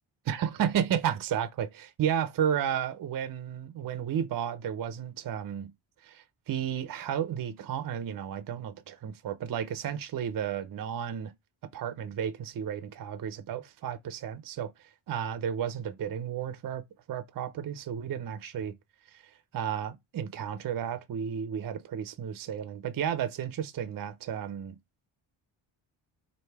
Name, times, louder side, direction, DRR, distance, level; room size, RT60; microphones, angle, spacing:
voice 1, 0.3-5.7 6.0-11.3 11.7-14.7 15.1-16.8 17.1-18.7 19.1-19.2 19.5-24.8, right 9 dB, 45° right, 0.5 m, -32 dB
3.2 x 2.6 x 4.5 m
cardioid pair, 85°, 50 cm